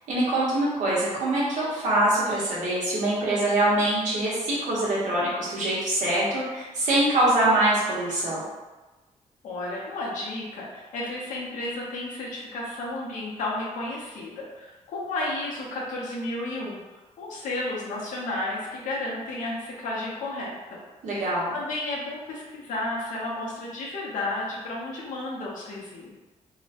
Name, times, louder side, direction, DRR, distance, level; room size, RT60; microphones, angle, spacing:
voice 1, 0.1-8.4 21.0-21.5, right 1 dB, 75° right, -7 dB, 1.0 m, -24 dB
voice 2, 9.4-16.8 17.2-20.8 21.5-26.2, left 2 dB, 80° left, -4 dB, 0.7 m, -32 dB
2.8 x 2.1 x 2.8 m, 1.2 s
cardioid pair, 140°, 13 cm